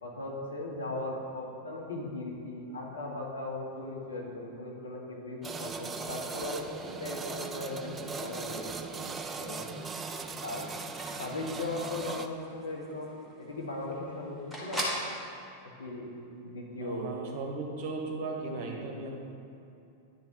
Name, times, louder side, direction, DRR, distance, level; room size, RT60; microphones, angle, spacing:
voice 1, 0.0-9.0 9.4-9.9 10.4-10.7 11.2-14.9 15.6-16.1 16.4-17.1, left 2 dB, 70° left, -2 dB, 1.3 m, -38 dB
sound 1, 5.4-12.3, right 4 dB, 20° right, 0.4 m, -39 dB
sound 2, 10.0-15.1, equal, ahead, 1.3 m, -41 dB
voice 2, 16.8-19.1, right 3 dB, 45° right, 1 dB, 1.2 m, -36 dB
10.0 x 3.8 x 4.5 m, 2.7 s
figure-of-eight pair, 90°, 0 cm